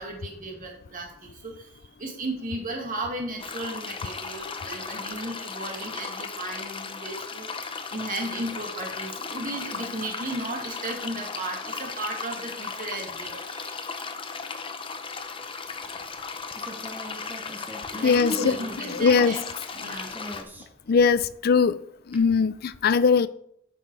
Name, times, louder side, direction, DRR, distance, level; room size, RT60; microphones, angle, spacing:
voice 1, 0.0-13.8 17.9-19.4 19.8-20.2, right 1 dB, 45° right, 2.1 m, -35 dB
sound 1, 3.4-20.4, left 5 dB, 25° left, 0.7 m, -36 dB
sound 2, 15.8-19.8 20.1-20.9 22.1-22.2, equal, 10° right, 1.1 m, -42 dB
voice 2, 18.0-18.6 18.9-19.4 20.9-21.8 22.1-23.3, left 5 dB, 55° left, 0.4 m, -20 dB
9.0 x 5.9 x 4.8 m
head